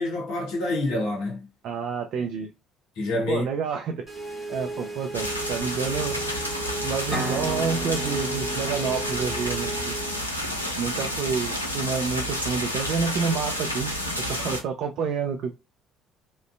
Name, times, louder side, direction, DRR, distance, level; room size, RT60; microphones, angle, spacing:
voice 1, 0.0-1.5 3.0-3.4, left 2 dB, 60° left, 0.8 m, -27 dB
voice 2, 1.6-2.5 3.3-4.1 4.5-6.2 6.8-9.9 10.8-15.5, right 6 dB, 55° right, 0.3 m, -29 dB
sound 1, 4.1-10.2, right 2 dB, 10° right, 1.3 m, -35 dB
sound 2, 5.1-14.6, equal, 90° left, 0.3 m, -30 dB
sound 3, 7.1-10.9, right 1 dB, 25° right, 0.9 m, -36 dB
2.4 x 2.2 x 2.3 m
figure-of-eight pair, 50°, 0 cm